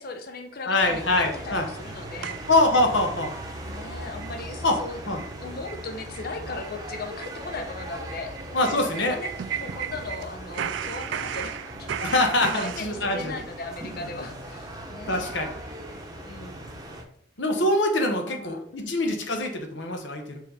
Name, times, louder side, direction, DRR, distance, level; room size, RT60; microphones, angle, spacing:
voice 1, 0.0-2.4 3.6-5.0 5.3-8.3 8.6-15.3 15.9-16.5 18.0-18.9, left 3 dB, 50° left, 5 dB, 0.7 m, -38 dB
voice 2, 0.7-1.7 2.5-3.3 4.6-4.8 5.1-5.2 8.5-9.2 12.0-13.3 15.1-15.5 17.4-20.4, left 2 dB, 70° left, 4 dB, 1.2 m, -24 dB
sound 1, 0.8-17.0, right 1 dB, 20° right, 0.9 m, -39 dB
sound 2, 2.2-3.4 3.7-3.8 4.2-4.4 4.7-4.8 5.2-5.3 5.6-5.8 6.1-6.3 6.6-10.2 10.5-12.9, right 9 dB, 70° right, 0.3 m, -35 dB
5.5 x 4.1 x 4.9 m, 0.63 s
head